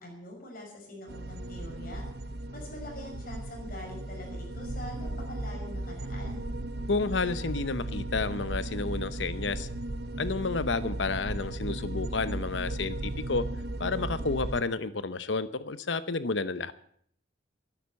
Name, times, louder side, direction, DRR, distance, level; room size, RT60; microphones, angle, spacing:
voice 1, 0.0-2.1 2.5-6.4, left 1 dB, 50° left, 1 dB, 5.8 m, -44 dB
sound 1, 1.1-14.6, right 1 dB, 60° right, 0.9 m, -36 dB
voice 2, 6.9-9.7 10.2-13.4 13.8-16.7, left 3 dB, 75° left, 14 dB, 0.9 m, -31 dB
12.5 x 11.0 x 7.6 m, 0.63 s
head